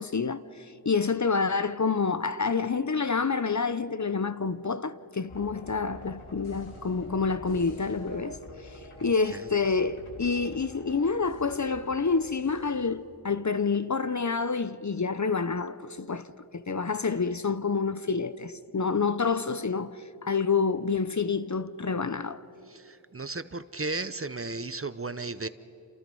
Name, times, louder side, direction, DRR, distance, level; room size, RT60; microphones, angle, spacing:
voice 1, 0.0-8.4 8.6-16.3 16.5-22.4, left 5 dB, 35° left, 0.8 m, -28 dB
sound 1, 5.3-12.9, left 1 dB, 80° left, 3.4 m, -47 dB
voice 2, 9.0-9.4 22.7-25.5, right 3 dB, 25° right, 0.8 m, -35 dB
28.5 x 28.5 x 5.5 m
wide cardioid pair, 60°, 49 cm